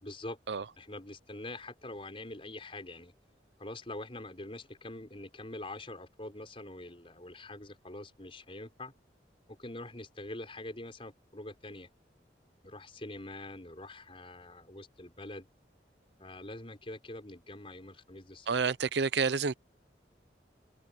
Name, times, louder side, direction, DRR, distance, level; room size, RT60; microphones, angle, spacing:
voice 1, 0.0-0.4 0.8-3.1 3.6-8.9 9.5-11.9 12.6-15.5 16.2-18.6, left 1 dB, 30° left, 5.0 m, -44 dB
voice 2, 18.5-19.5, right 5 dB, 75° right, 0.6 m, -29 dB
head